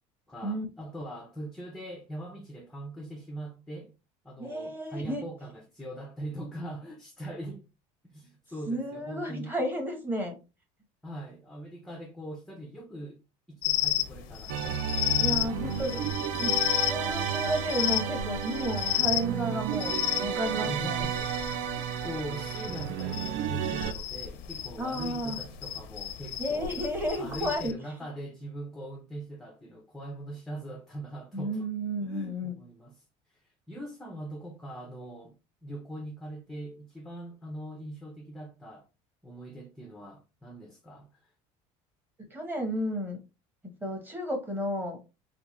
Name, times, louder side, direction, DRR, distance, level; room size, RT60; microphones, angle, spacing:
voice 1, 0.3-3.9 4.2-7.7 8.1-9.5 11.0-13.2 13.5-14.9 15.3-16.1 20.5-21.3 21.6-26.8 27.2-31.7 32.0-38.9 39.2-41.3, right 1 dB, ahead, 0.4 m, -42 dB
voice 2, 4.4-5.2 8.7-10.3 15.2-16.0 16.3-21.0 24.8-25.4 26.4-27.7 31.3-32.6 42.3-43.2 43.8-45.0, right 1 dB, 15° right, 0.9 m, -32 dB
sound 1, 13.6-27.7, left 13 dB, 75° left, 0.5 m, -33 dB
sound 2, 14.5-23.9, right 8 dB, 65° right, 0.5 m, -32 dB
3.5 x 2.4 x 2.9 m
cardioid pair, 155°, 14 cm